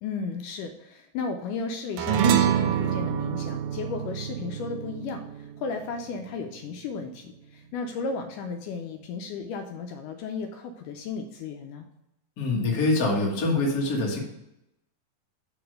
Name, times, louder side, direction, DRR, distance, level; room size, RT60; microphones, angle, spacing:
voice 1, 0.0-11.9, left 4 dB, 80° left, 5 dB, 1.9 m, -34 dB
sound 1, 2.0-6.7, right 9 dB, 90° right, 2.4 m, -26 dB
voice 2, 12.4-14.2, left 2 dB, 55° left, -2 dB, 1.0 m, -24 dB
5.2 x 4.9 x 6.3 m, 0.86 s
omnidirectional pair, 4.0 m